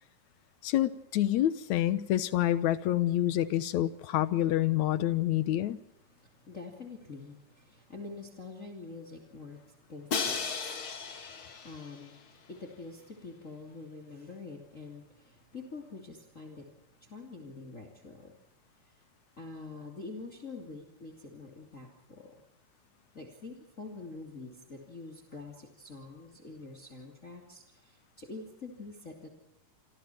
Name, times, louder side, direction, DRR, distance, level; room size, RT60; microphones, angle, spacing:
voice 1, 0.6-5.8, left 13 dB, 70° left, 15 dB, 2.2 m, -27 dB
voice 2, 6.2-16.7 17.0-18.4 19.4-22.4 23.1-29.3, left 3 dB, 25° left, 3 dB, 3.0 m, -46 dB
Crash cymbal, 10.1-12.1, left 5 dB, 45° left, 2.7 m, -35 dB
27.0 x 26.5 x 4.5 m, 0.80 s
omnidirectional pair, 3.8 m